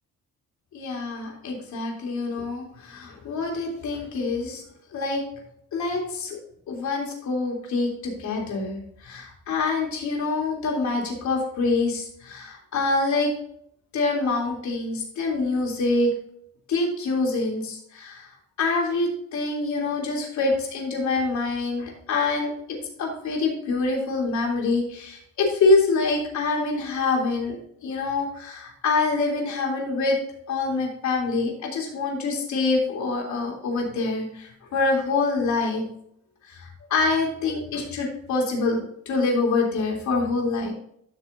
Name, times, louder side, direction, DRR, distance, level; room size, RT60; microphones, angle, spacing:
voice 1, 0.7-4.6 4.9-5.2 5.7-6.4 6.7-13.3 13.9-16.1 16.7-22.5 23.0-27.6 27.8-30.2 30.5-35.8 36.5-40.7, left 3 dB, 60° left, -1 dB, 3.3 m, -25 dB
12.5 x 6.2 x 2.7 m, 0.69 s
cardioid pair, 150°, 31 cm